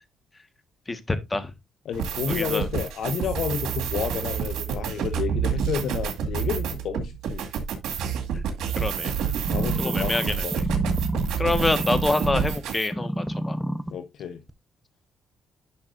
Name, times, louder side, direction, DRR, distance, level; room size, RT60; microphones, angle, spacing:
voice 1, 0.9-1.5 2.3-2.7 8.3-8.4 8.8-9.1 9.8-10.2 11.4-13.6, left 2 dB, 20° left, 1.5 m, -26 dB
voice 2, 1.8-7.4 9.0-9.2 9.5-10.6 13.9-14.4, left 7 dB, 70° left, 1.1 m, -31 dB
sound 1, 1.9-12.9, right 7 dB, 85° right, 2.1 m, -28 dB
sound 2, 9.4-12.6 12.9-13.9 14.5-14.6, equal, ahead, 0.7 m, -29 dB
11.0 x 5.9 x 2.6 m
cardioid pair, 90°, 0 cm